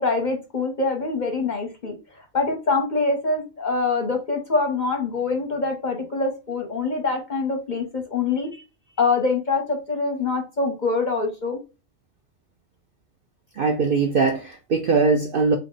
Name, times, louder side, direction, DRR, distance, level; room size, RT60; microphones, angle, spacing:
voice 1, 0.0-8.6 9.0-11.6, left 3 dB, 45° left, 0.7 m, -24 dB
voice 2, 13.6-15.6, right 4 dB, 65° right, 0.5 m, -21 dB
3.3 x 2.3 x 3.8 m
omnidirectional pair, 1.4 m